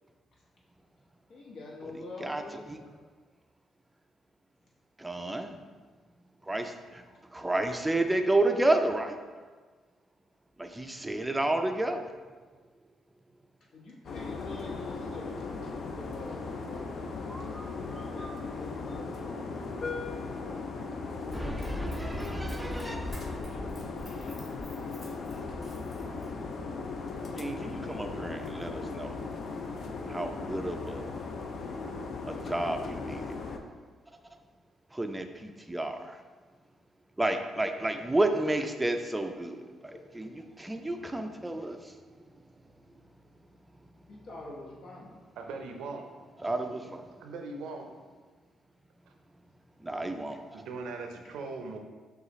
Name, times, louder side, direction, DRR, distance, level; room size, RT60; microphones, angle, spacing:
voice 1, 1.3-3.0 13.7-20.0 39.9-40.0 44.1-45.2, left 2 dB, 70° left, -4 dB, 1.1 m, -46 dB
voice 2, 5.0-5.6 6.5-6.7 7.3-9.2 10.6-12.1 17.3-18.4 21.3-23.2 27.4-29.2 30.1-31.1 32.3-33.4 34.9-36.2 37.2-42.0 46.4-47.0 49.8-50.4, right 2 dB, 10° right, 6 dB, 0.4 m, -31 dB
sound 1, 14.0-33.6, left 4 dB, 55° left, 0.4 m, -37 dB
Run, 21.3-26.5 27.1-27.2, left 1 dB, 20° left, 1.4 m, -41 dB
voice 3, 45.4-46.1 47.2-47.9 50.5-51.8, right 3 dB, 80° right, 4 dB, 0.5 m, -39 dB
6.5 x 2.4 x 3.1 m, 1.4 s
cardioid pair, 90°, 0 cm